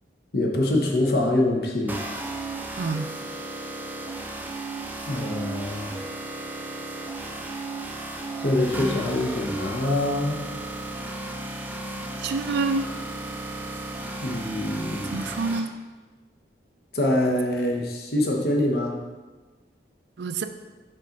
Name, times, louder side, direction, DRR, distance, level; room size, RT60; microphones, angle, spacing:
voice 1, 0.3-2.1 5.1-6.0 8.4-10.5 14.2-15.3 16.9-19.0, left 1 dB, 60° left, 0 dB, 0.8 m, -25 dB
sound 1, 1.9-15.6, right 2 dB, 10° right, 0.4 m, -34 dB
voice 2, 2.8-3.1 12.2-12.9 15.1-15.7 20.2-20.5, right 4 dB, 75° right, 9 dB, 0.4 m, -27 dB
5.5 x 3.8 x 5.2 m, 1.3 s
head